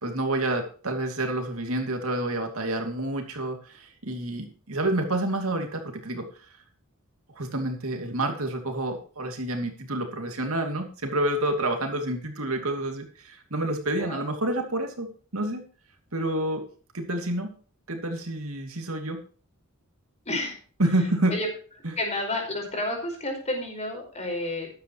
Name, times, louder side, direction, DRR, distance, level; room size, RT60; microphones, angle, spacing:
voice 1, 0.0-6.5 7.3-15.6 16.1-16.6 16.9-17.5 17.9-19.2 20.8-21.3 21.8-21.9, right 1 dB, 70° right, 4 dB, 2.7 m, -28 dB
voice 2, 20.2-20.6 21.3-21.5 22.0-24.7, left 1 dB, 30° left, 2 dB, 5.0 m, -30 dB
13.5 x 11.5 x 3.1 m, 0.40 s
head